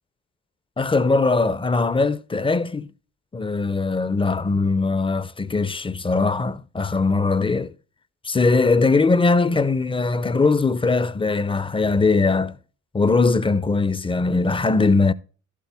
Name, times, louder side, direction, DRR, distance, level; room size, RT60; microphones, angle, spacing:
voice 1, 0.8-2.9 3.3-7.7 8.2-12.6 12.9-15.1, left 3 dB, 15° left, 0.6 m, -20 dB
12.0 x 8.3 x 3.4 m
cardioid pair, 90°, 30 cm